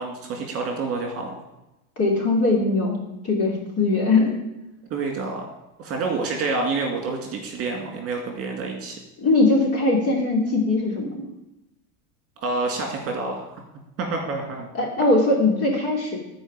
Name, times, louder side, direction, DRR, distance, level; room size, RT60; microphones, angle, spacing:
voice 1, 0.0-1.4 4.9-5.4 5.8-9.0 12.4-13.5 14.0-14.7, right 3 dB, 30° right, 1 dB, 2.3 m, -28 dB
voice 2, 2.0-3.0 3.2-4.4 9.2-11.2 14.7-16.2, left 2 dB, 30° left, -1 dB, 3.0 m, -20 dB
13.5 x 4.9 x 7.4 m, 0.93 s
supercardioid pair, 155°, 44 cm